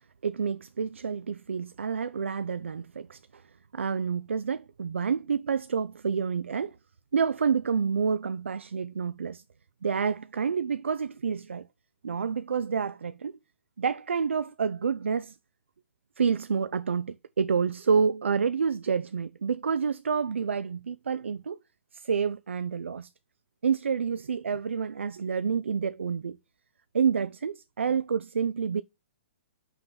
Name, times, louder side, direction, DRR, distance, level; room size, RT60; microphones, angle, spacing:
voice 1, 0.2-3.4 3.7-6.8 7.1-9.4 9.8-11.7 12.0-13.3 13.8-15.4 16.2-21.6 21.9-23.1 23.6-26.4 26.9-28.8, right 6 dB, 80° right, 0.4 m, -28 dB
5.6 x 3.9 x 6.1 m
hypercardioid pair, 125°, 6 cm